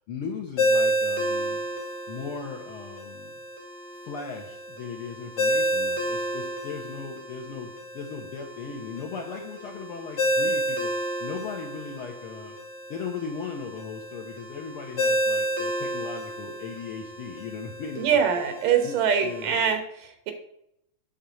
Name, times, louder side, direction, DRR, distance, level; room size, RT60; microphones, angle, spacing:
voice 1, 0.1-1.6 2.1-3.3 4.0-10.9 11.2-12.6 12.9-18.1 18.3-18.4 18.8-19.6, left 5 dB, 80° left, 1 dB, 1.2 m, -37 dB
Ringtone, 0.6-19.7, equal, 35° left, 2.7 m, -30 dB
voice 2, 18.0-20.3, right 7 dB, 85° right, 6 dB, 2.8 m, -24 dB
9.6 x 3.8 x 6.9 m, 0.79 s
omnidirectional pair, 3.7 m